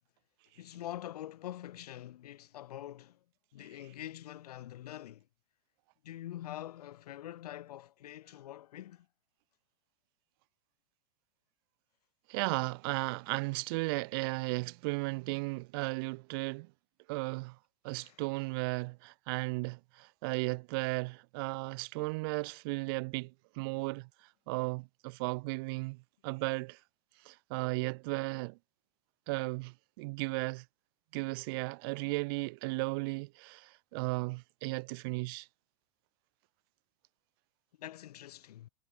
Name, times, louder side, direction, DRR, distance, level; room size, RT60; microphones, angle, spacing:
voice 1, 0.6-3.2 3.5-5.3 6.0-9.1 17.9-18.2 23.7-23.9 37.8-38.7, left 13 dB, 75° left, 3.2 m, -45 dB
voice 2, 12.3-16.7 17.1-17.6 17.8-24.1 24.5-26.8 27.2-28.6 29.3-30.6 31.1-35.5, right 27 dB, 35° right, 0.6 m, -35 dB
supercardioid pair, 170°, 20 cm